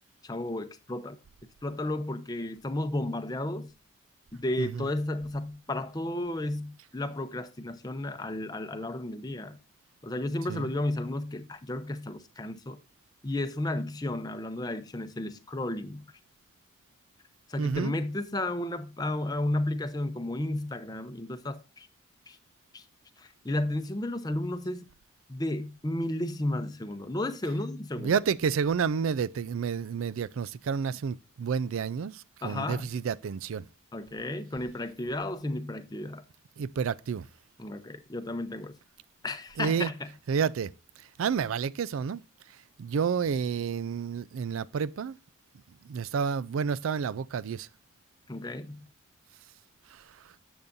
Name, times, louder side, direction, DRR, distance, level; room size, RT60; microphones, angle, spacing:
voice 1, 0.2-1.2 1.6-3.7 4.3-9.6 10.0-12.8 13.2-16.0 17.5-21.9 22.3-22.4 22.7-22.8 23.2-24.8 25.3-28.1 32.4-32.9 33.9-36.2 37.6-38.8 39.2-40.1 48.3-48.9, left 1 dB, 20° left, 0.6 m, -33 dB
voice 2, 17.6-17.9 28.0-33.7 36.6-37.3 39.6-39.9 40.3-42.2 42.5-45.2 45.8-47.7 49.9-50.3, right 6 dB, 90° right, 0.4 m, -30 dB
10.5 x 7.0 x 2.6 m
head